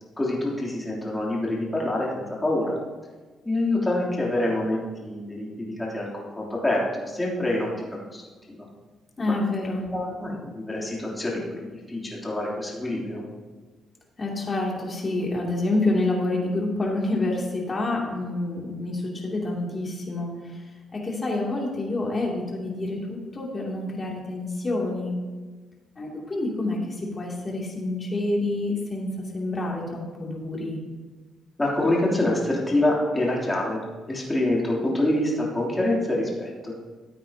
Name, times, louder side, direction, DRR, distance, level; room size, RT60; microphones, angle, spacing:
voice 1, 0.2-2.7 3.4-7.8 8.1-8.2 8.5-8.7 9.2-9.3 9.9-13.2 31.6-33.8 34.1-36.7, left 1 dB, 15° left, -4 dB, 3.1 m, -26 dB
voice 2, 9.2-9.9 14.2-20.6 20.9-25.1 26.0-30.8, left 2 dB, 30° left, -2 dB, 2.8 m, -28 dB
14.0 x 9.0 x 2.9 m, 1.3 s
cardioid pair, 90°, 0 cm